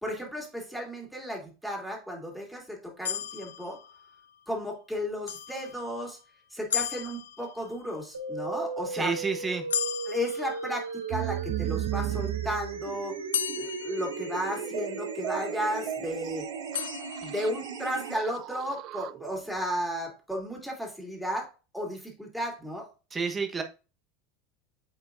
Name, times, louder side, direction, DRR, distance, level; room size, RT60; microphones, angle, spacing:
voice 1, 0.0-3.8 4.5-6.2 6.5-9.2 10.1-13.2 13.5-16.5 17.2-22.9, equal, ahead, 1 dB, 2.7 m, -34 dB
sound 1, 3.0-4.4 5.3-6.2 6.7-7.9 9.7-11.2 13.3-14.9 16.7-17.9, left 9 dB, 80° left, 0.4 m, -36 dB
sound 2, 8.1-18.1, right 4 dB, 90° right, 0.7 m, -37 dB
voice 2, 8.9-9.6 23.1-23.6, right 5 dB, 25° right, 6 dB, 1.0 m, -29 dB
sound 3, 11.1-19.7, right 14 dB, 50° right, 0.3 m, -36 dB
8.3 x 4.6 x 2.5 m, 0.32 s
hypercardioid pair, 85°, 0 cm